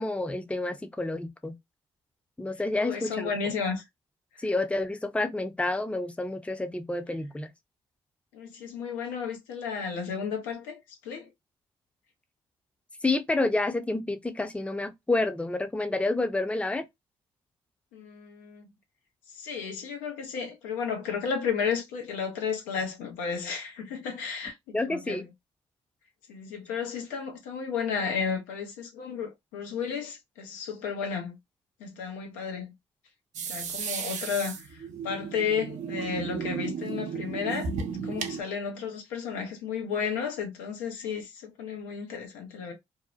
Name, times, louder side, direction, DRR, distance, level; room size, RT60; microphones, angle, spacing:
voice 1, 0.0-1.5 2.4-3.4 4.4-7.5 13.0-16.9 24.7-25.3, left 2 dB, 10° left, 0.6 m, -29 dB
voice 2, 2.8-3.8 8.3-10.8 11.0-11.3 17.9-18.6 19.3-25.2 26.3-31.4 31.8-32.7 33.5-34.8 35.0-37.7 38.0-42.7, left 6 dB, 85° left, 0.8 m, -33 dB
sound 1, 33.3-38.4, right 6 dB, 60° right, 0.6 m, -34 dB
2.7 x 2.1 x 2.4 m
hypercardioid pair, 45°, 14 cm